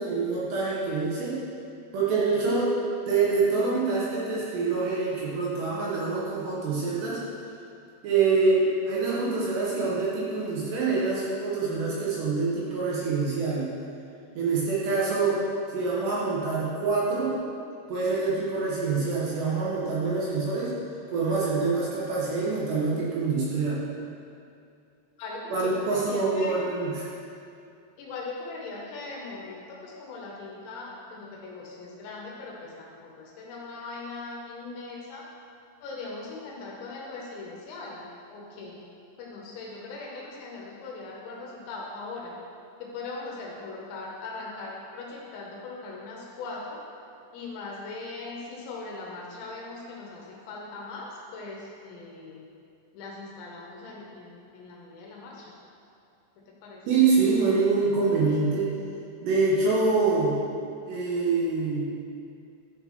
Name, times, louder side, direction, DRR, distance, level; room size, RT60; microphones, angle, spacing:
voice 1, 0.0-1.4 1.9-2.8 3.1-7.2 8.0-13.7 14.3-15.4 15.7-17.4 17.9-20.7 21.1-23.8 25.5-27.1 56.9-58.7 59.2-60.4 60.9-61.9, right 4 dB, 75° right, -6 dB, 2.8 m, -25 dB
voice 2, 25.2-26.6 28.0-35.3 35.8-38.8 39.2-42.3 42.8-46.8 47.3-52.5 52.9-55.5 56.4-56.8, left 3 dB, 75° left, -2 dB, 2.9 m, -40 dB
11.5 x 6.6 x 3.0 m, 2.5 s
omnidirectional pair, 5.8 m